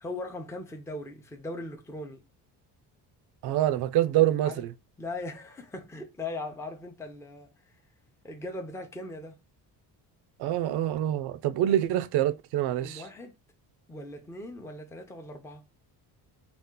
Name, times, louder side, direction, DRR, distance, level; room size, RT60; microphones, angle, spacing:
voice 1, 0.0-2.2 4.4-4.6 5.0-7.5 8.2-9.4 12.6-13.4 13.9-15.6, left 2 dB, 5° left, 0.6 m, -39 dB
voice 2, 3.4-4.7 10.4-13.0, right 12 dB, 80° right, 0.6 m, -26 dB
4.1 x 2.4 x 3.7 m
cardioid pair, 135°, 38 cm